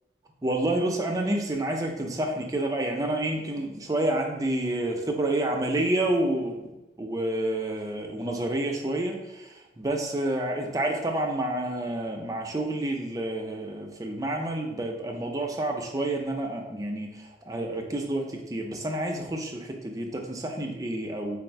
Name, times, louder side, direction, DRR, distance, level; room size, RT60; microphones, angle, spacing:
voice 1, 0.4-6.7 7.0-21.4, right 1 dB, 20° right, 2 dB, 0.4 m, -29 dB
3.3 x 2.3 x 4.4 m, 1.0 s
head